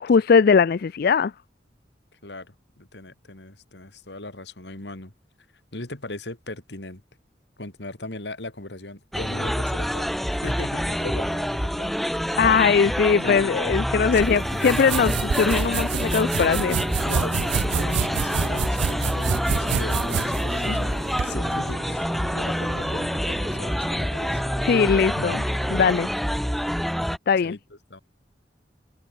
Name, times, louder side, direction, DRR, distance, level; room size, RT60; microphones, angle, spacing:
voice 1, 0.0-1.3 12.4-16.8 20.6-20.8 24.6-25.4 25.7-26.1 27.3-27.6, left 5 dB, 60° left, 0.4 m, -20 dB
voice 2, 2.1-5.1 5.7-7.0 7.6-12.0 13.1-13.4 14.1-14.4 17.0-24.4 25.2-25.4 26.5-26.7 27.4-28.0, left 2 dB, 75° left, 3.0 m, -38 dB
sound 1, 9.1-27.2, equal, ahead, 0.5 m, -27 dB
sound 2, 14.2-21.3, right 6 dB, 80° right, 0.4 m, -28 dB
sound 3, 15.0-25.9, right 1 dB, 45° right, 2.6 m, -40 dB
head